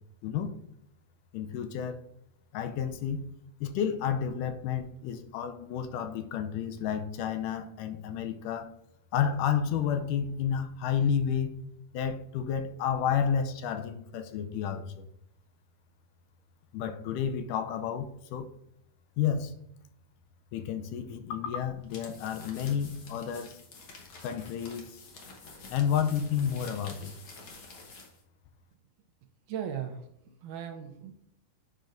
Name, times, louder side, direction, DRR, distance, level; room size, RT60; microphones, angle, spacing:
voice 1, 0.2-0.6 1.3-2.0 2.5-3.3 3.6-8.7 9.1-11.6 11.9-15.1 16.7-18.5 19.2-19.5 20.5-23.6 24.0-25.0 25.7-27.1, left 8 dB, 80° left, 8 dB, 2.1 m, -31 dB
sound 1, 21.8-28.2, left 3 dB, 60° left, 1.4 m, -49 dB
voice 2, 29.5-30.1 30.4-31.1, right 8 dB, 75° right, 5 dB, 1.9 m, -37 dB
9.1 x 5.3 x 2.5 m, 0.77 s
omnidirectional pair, 3.8 m